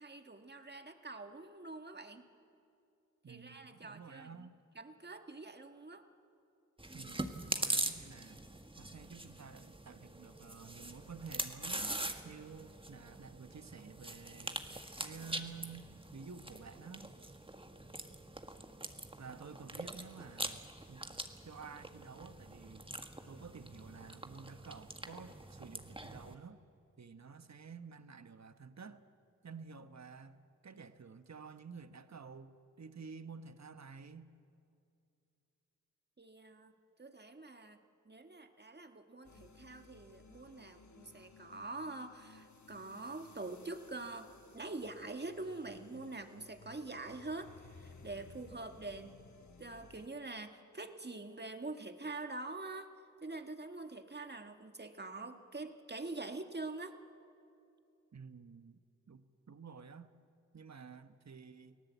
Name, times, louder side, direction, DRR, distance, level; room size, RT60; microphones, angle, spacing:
voice 1, 0.0-2.3 3.3-4.3 4.7-6.0 36.2-37.8 38.0-49.2 49.6-52.9 53.2-57.0, right 2 dB, 30° right, 6 dB, 1.7 m, -45 dB
voice 2, 3.2-4.6 6.9-8.4 8.8-12.0 12.2-14.6 15.0-17.1 19.2-20.6 20.9-21.2 21.4-22.9 23.3-26.6 27.0-29.0 29.4-34.3 58.1-58.8 59.1-60.1 60.5-61.8, right 5 dB, 55° right, 10 dB, 1.1 m, -51 dB
Chewing mastication, 6.8-26.3, right 1 dB, 15° right, 1.5 m, -43 dB
sound 1, 39.2-50.1, left 4 dB, 65° left, 1.2 m, -59 dB
29.5 x 18.0 x 8.2 m, 2.6 s
wide cardioid pair, 65°, 32 cm